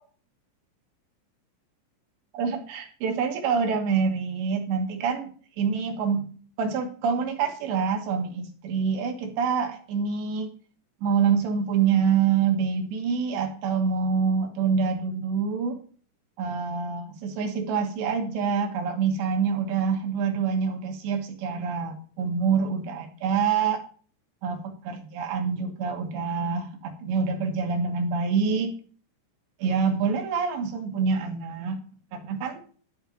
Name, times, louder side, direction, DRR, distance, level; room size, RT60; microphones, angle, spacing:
voice 1, 2.3-6.3 6.6-10.5 11.0-15.8 16.4-23.8 24.4-28.7 29.6-31.8 32.1-32.6, right 6 dB, 70° right, 4 dB, 3.4 m, -26 dB
12.5 x 4.5 x 7.1 m, 0.43 s
omnidirectional pair, 5.8 m